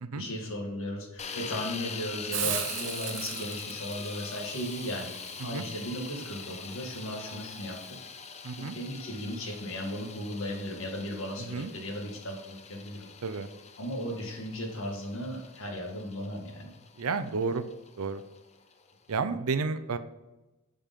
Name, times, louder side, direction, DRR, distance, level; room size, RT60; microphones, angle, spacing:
voice 1, 0.1-5.1 5.4-7.8 8.6-13.1 13.8-16.7, equal, 65° left, 1 dB, 2.0 m, -36 dB
sound 1, 1.2-19.1, left 6 dB, 30° left, 0.6 m, -43 dB
Hiss, 2.3-7.9, right 9 dB, 60° right, 1.0 m, -39 dB
voice 2, 8.4-8.8 11.4-11.7 13.2-13.5 17.0-17.6 18.0-18.2 19.1-20.0, right 4 dB, 80° right, 11 dB, 0.6 m, -31 dB
9.0 x 5.3 x 3.7 m, 1.0 s
head